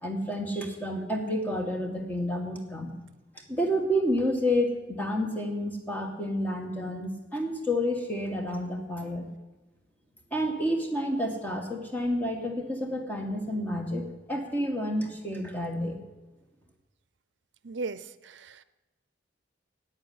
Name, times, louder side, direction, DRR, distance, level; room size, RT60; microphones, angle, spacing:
voice 1, 0.0-2.9 3.5-9.3 10.3-16.0, equal, 10° left, 2 dB, 1.9 m, -30 dB
voice 2, 17.6-18.6, right 3 dB, 70° right, 15 dB, 0.7 m, -37 dB
11.0 x 9.0 x 9.7 m, 1.1 s
head